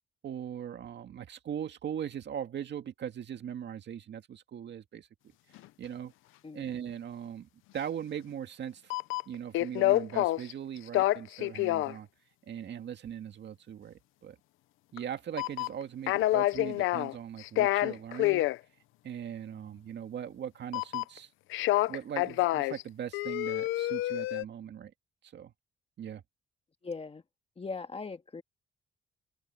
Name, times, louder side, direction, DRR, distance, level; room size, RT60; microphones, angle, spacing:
voice 1, 0.2-5.1 5.8-6.1 6.5-8.9 9.3-12.1 12.5-14.4 14.9-18.5 19.0-21.3 21.9-24.9 25.3-25.5 26.0-26.2, right 9 dB, 60° right, 2.1 m, -40 dB
sound 1, 5.6-5.7 8.9-10.5 10.8-11.9 15.0-15.1 15.4-17.1 17.4-18.6 20.7-21.2 21.5-22.8 23.1-24.4, left 16 dB, 90° left, 0.6 m, -27 dB
voice 2, 6.4-6.8 26.8-27.2 27.6-28.4, left 4 dB, 30° left, 1.8 m, -40 dB
open air
cardioid pair, 90°, 20 cm